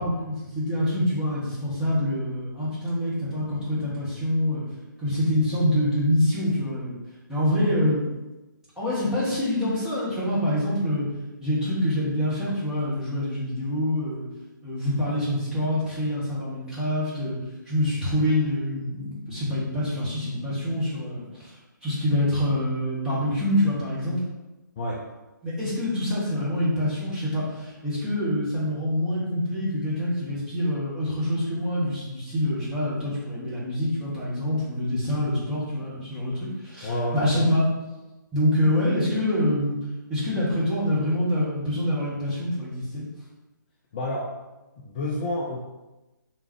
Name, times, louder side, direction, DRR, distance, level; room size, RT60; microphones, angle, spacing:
voice 1, 0.0-4.6 5.0-7.0 7.3-8.0 8.8-11.1 11.4-14.2 14.6-17.4 17.7-21.5 21.8-24.2 25.4-37.6 38.3-39.8 40.1-43.0, left 1 dB, 5° right, -10 dB, 1.2 m, -26 dB
voice 2, 36.8-37.4 43.9-44.3 44.8-45.6, left 1 dB, 25° left, -4 dB, 0.4 m, -29 dB
3.7 x 3.2 x 3.0 m, 1.1 s
figure-of-eight pair, 140°, 11 cm